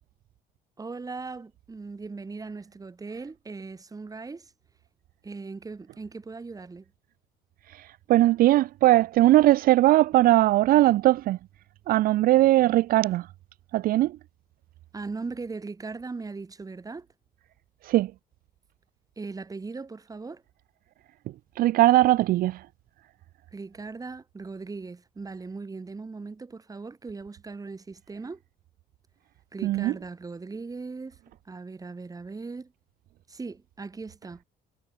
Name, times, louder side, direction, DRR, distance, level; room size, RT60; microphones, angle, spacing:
voice 1, 0.8-4.5 5.2-6.8 14.9-17.1 19.2-20.4 23.5-28.4 29.5-31.2 31.4-32.7 33.3-34.4, right 4 dB, 20° right, 2.8 m, -39 dB
voice 2, 7.7-11.4 11.9-13.3 13.7-14.2 17.8-18.1 21.6-22.6 29.6-29.9, right 16 dB, 60° right, 0.4 m, -20 dB
cardioid pair, 110°, 17 cm